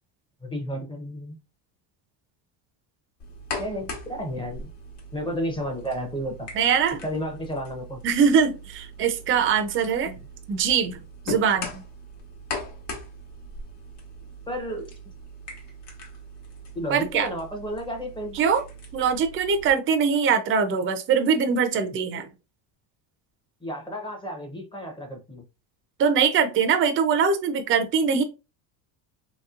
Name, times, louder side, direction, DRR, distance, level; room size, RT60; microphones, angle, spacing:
voice 1, 0.4-1.4 3.6-4.7 5.1-6.5 7.0-8.0 14.5-14.9 16.7-18.4 23.6-25.4, equal, 10° left, 0.6 m, -32 dB
sound 1, 3.2-19.7, left 1 dB, 60° left, 1.2 m, -40 dB
voice 2, 6.5-7.0 8.0-10.2 10.5-11.0 11.3-11.8 16.9-17.3 18.3-18.6 18.9-22.3 26.0-28.2, right 6 dB, 30° right, 0.4 m, -22 dB
3.0 x 2.9 x 2.4 m
cardioid pair, 130°, 46 cm